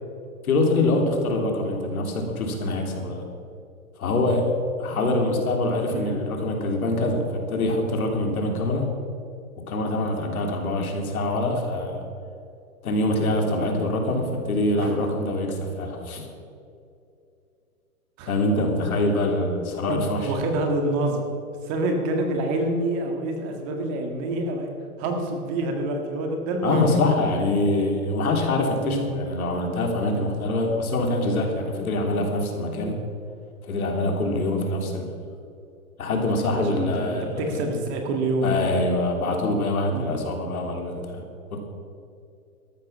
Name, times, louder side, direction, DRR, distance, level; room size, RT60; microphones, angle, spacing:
voice 1, 0.4-3.2 4.0-4.5 4.8-8.9 9.7-12.0 12.8-16.3 18.3-20.3 26.6-33.0 33.7-35.1 36.0-37.5 38.4-41.2 41.5-41.6, left 2 dB, 70° left, 2 dB, 3.3 m, -24 dB
voice 2, 20.3-21.2 21.6-24.7 25.0-27.5 28.8-29.0 36.5-38.7 39.9-40.1, right 2 dB, 30° right, 4 dB, 1.9 m, -27 dB
13.5 x 12.0 x 5.7 m, 2.5 s
hypercardioid pair, 150°, 44 cm